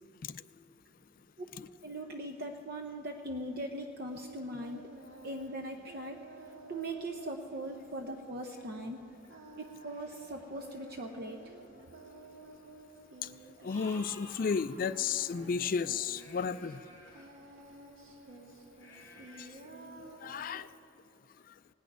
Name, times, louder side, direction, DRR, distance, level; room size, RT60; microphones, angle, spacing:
voice 1, 1.8-4.9 5.2-6.2 6.7-9.1 9.6-11.5, right 1 dB, 50° right, 4 dB, 0.8 m, -40 dB
Singing, 4.1-20.7, right 2 dB, 85° right, 1.8 m, -53 dB
sound 1, 9.9-11.4 12.2-12.3 12.6-12.7 13.6-17.3 18.8-19.5, left 2 dB, 15° left, 2.5 m, -54 dB
voice 2, 13.6-16.8 19.4-19.5 20.2-20.7, left 6 dB, 45° left, 15 dB, 0.3 m, -33 dB
18.5 x 6.3 x 9.2 m, 2.9 s
head